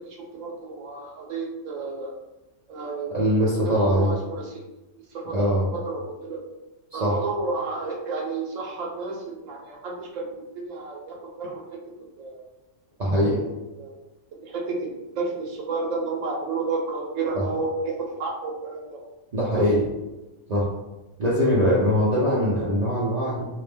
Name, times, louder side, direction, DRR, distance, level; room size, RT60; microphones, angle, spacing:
voice 1, 0.0-2.2 2.7-3.1 3.6-4.7 5.1-6.4 6.9-10.3 10.5-11.8 12.2-12.5 13.3-13.9 14.3-19.0 19.5-19.7, right 3 dB, 80° right, -1 dB, 1.0 m, -31 dB
voice 2, 3.1-4.1 5.3-5.7 6.9-7.2 13.0-13.4 17.3-17.4 19.3-19.9 20.5-20.7 21.2-23.5, equal, 65° right, -5 dB, 0.4 m, -22 dB
2.5 x 2.0 x 3.3 m, 1.0 s
omnidirectional pair, 1.3 m